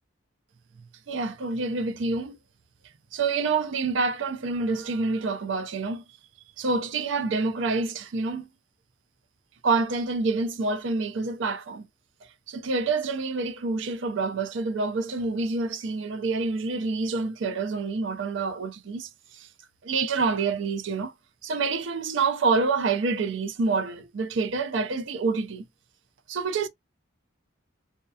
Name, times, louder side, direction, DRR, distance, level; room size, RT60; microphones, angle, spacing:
voice 1, 1.1-2.4 3.1-6.0 6.6-8.5 9.6-11.9 12.5-19.5 19.8-21.1 21.4-25.6 26.3-26.7, right 4 dB, 65° right, 0.5 m, -27 dB
2.7 x 2.0 x 2.2 m
head